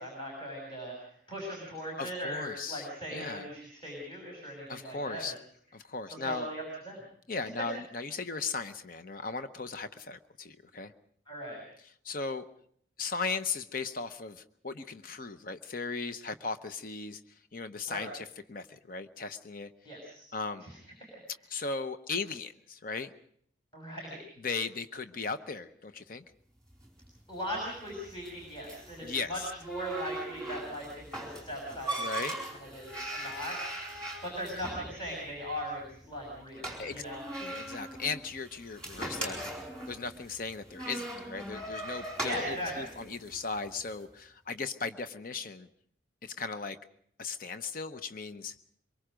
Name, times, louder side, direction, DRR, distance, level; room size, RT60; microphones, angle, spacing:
voice 1, 0.0-5.2 6.2-7.0 11.3-11.6 17.9-18.1 19.8-20.2 20.6-20.7 21.1-21.2 23.7-24.2 27.3-29.4 29.7-32.3 32.6-33.6 34.2-37.2 42.2-42.9, equal, 25° left, -1 dB, 6.2 m, -39 dB
voice 2, 2.0-3.5 4.7-5.3 5.7-6.5 7.3-10.9 12.0-12.4 13.0-17.2 17.5-19.7 20.3-20.6 21.5-23.1 24.4-26.2 29.0-29.5 32.0-32.4 36.8-37.0 37.4-45.7 46.2-46.8 47.2-48.6, left 4 dB, 45° left, 10 dB, 0.8 m, -37 dB
sound 1, 26.7-43.9, right 1 dB, 5° left, 4.6 m, -40 dB
24.0 x 23.0 x 5.1 m, 0.63 s
head